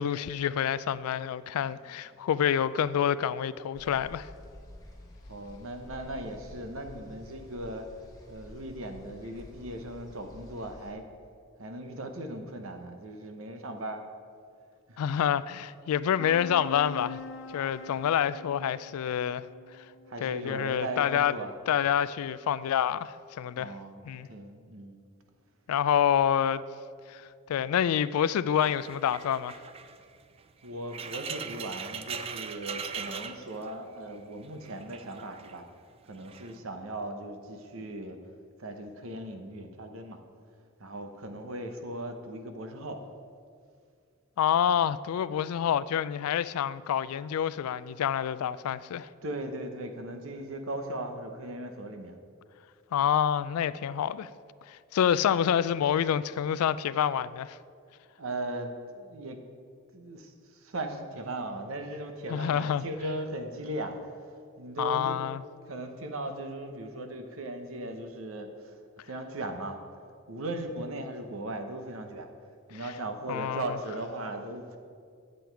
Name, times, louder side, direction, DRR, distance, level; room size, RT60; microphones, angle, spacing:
voice 1, 0.0-4.3 15.0-17.2 17.5-19.5 20.2-21.3 21.7-23.7 24.1-24.3 25.7-26.6 27.1-29.6 44.4-49.1 52.9-54.3 54.7-57.6 62.3-62.8 64.8-65.4 73.3-73.6, left 9 dB, 90° left, 0.3 m, -27 dB
sound 1, 3.7-10.9, left 1 dB, 15° left, 1.1 m, -50 dB
voice 2, 5.3-7.9 8.3-11.1 11.6-14.0 14.9-15.0 20.1-21.5 23.5-25.0 30.6-35.6 36.1-38.2 38.6-40.2 40.8-43.0 49.2-52.2 58.2-59.4 59.9-64.0 64.6-65.2 65.6-68.8 69.1-69.8 70.3-72.3 72.7-74.8, right 1 dB, 70° right, 0.9 m, -38 dB
sound 2, 16.2-21.0, left 4 dB, 60° left, 0.9 m, -44 dB
sound 3, 28.6-34.2 34.4-35.6 36.2-36.6, right 6 dB, 25° right, 0.3 m, -40 dB
8.5 x 7.8 x 4.6 m
head